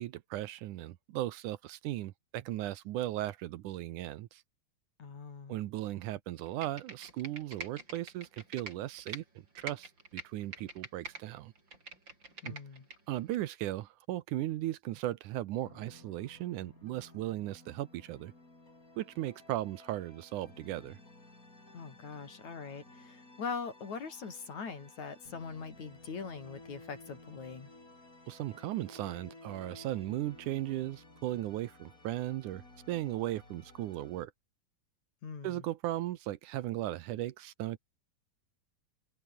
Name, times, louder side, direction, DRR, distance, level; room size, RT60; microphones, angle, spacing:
voice 1, 0.0-4.4 5.5-9.2 9.6-11.5 12.4-12.5 13.1-18.3 19.0-21.0 28.3-34.3 35.4-37.8, right 14 dB, 75° right, 2.3 m, -37 dB
voice 2, 5.0-5.6 12.4-12.9 21.7-27.7 35.2-35.6, left 5 dB, 60° left, 5.5 m, -42 dB
Computer keyboard, 6.5-9.2 9.6-11.2 11.6-13.0 13.3-13.4, right 2 dB, 35° right, 7.0 m, -45 dB
sound 1, 15.7-34.2, left 2 dB, 25° left, 6.3 m, -55 dB
open air
omnidirectional pair, 3.8 m